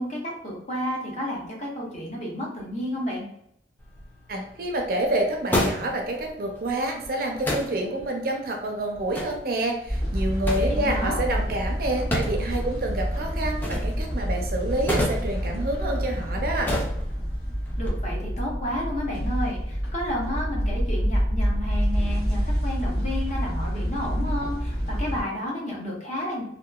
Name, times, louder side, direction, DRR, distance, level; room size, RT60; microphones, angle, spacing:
voice 1, 0.0-3.2 10.7-11.2 17.8-26.4, left 1 dB, 40° left, -2 dB, 0.7 m, -31 dB
sound 1, 3.8-17.9, left 1 dB, 10° left, 0.4 m, -34 dB
voice 2, 4.3-16.7, right 1 dB, 55° right, 2 dB, 0.4 m, -28 dB
sound 2, 9.9-25.2, equal, 75° left, 0.9 m, -27 dB
2.8 x 2.1 x 2.3 m, 0.75 s
head